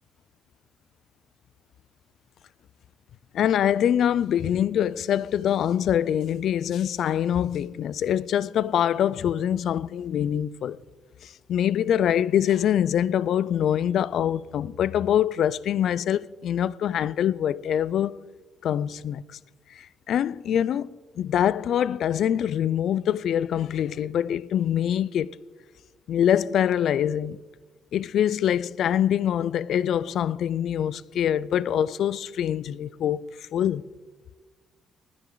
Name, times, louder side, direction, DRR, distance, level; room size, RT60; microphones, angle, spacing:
voice 1, 3.3-10.8 11.2-18.2 18.6-19.4 19.7-25.4 26.1-27.4 27.9-33.8, left 10 dB, 70° left, 0.4 m, -24 dB
20.0 x 11.0 x 3.9 m
cardioid pair, 90°, 0 cm